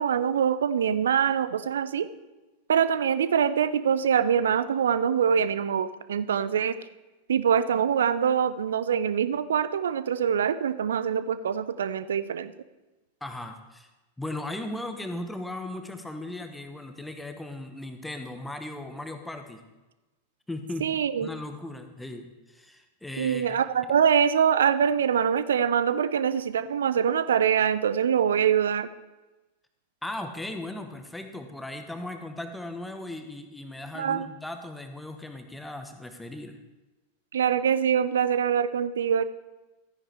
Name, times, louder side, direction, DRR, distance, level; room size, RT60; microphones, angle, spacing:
voice 1, 0.0-2.1 2.7-6.8 7.3-12.5 20.8-21.3 23.2-28.9 34.0-34.3 37.3-39.2, right 8 dB, 65° right, 14 dB, 0.5 m, -24 dB
voice 2, 13.2-13.9 14.2-19.6 20.5-20.9 21.2-23.6 30.0-36.6, left 1 dB, 5° left, 6 dB, 1.1 m, -37 dB
13.5 x 9.9 x 3.4 m, 1.1 s
figure-of-eight pair, 90°, 0 cm